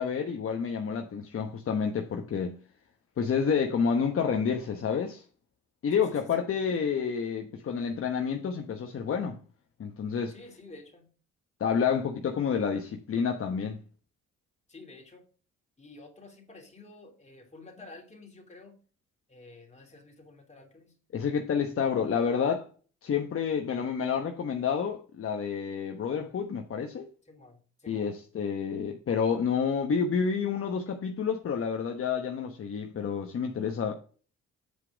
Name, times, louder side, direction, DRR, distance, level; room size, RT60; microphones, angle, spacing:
voice 1, 0.0-2.6 3.2-5.2 5.8-9.4 9.8-10.3 11.6-13.8 21.1-22.7 23.0-27.1 27.9-33.9, left 6 dB, 45° left, 1.1 m, -29 dB
voice 2, 5.9-6.7 10.3-11.1 14.7-15.2 15.8-18.7 19.3-21.0 27.2-28.2, left 3 dB, 20° left, 2.9 m, -50 dB
8.3 x 4.8 x 5.0 m
cardioid pair, 90°, 30 cm